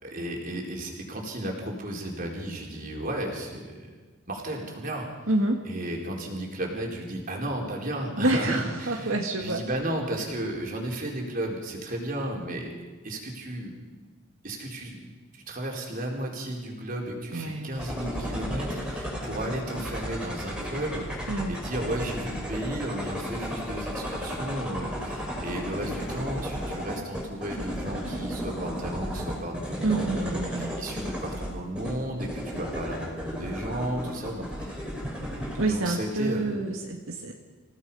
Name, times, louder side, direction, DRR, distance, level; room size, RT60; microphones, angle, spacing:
voice 1, 0.0-3.9 4.3-5.1 5.6-12.7 13.0-13.8 14.4-34.9 35.6-36.5, right 1 dB, 40° right, 0 dB, 4.2 m, -34 dB
voice 2, 5.3-5.6 8.2-9.6 17.3-17.7 21.3-21.6 29.8-30.7 35.5-37.3, right 2 dB, 75° right, 1 dB, 2.0 m, -27 dB
sound 1, 17.7-35.6, equal, 5° right, 5.0 m, -34 dB
28.0 x 17.0 x 5.6 m, 1.4 s
head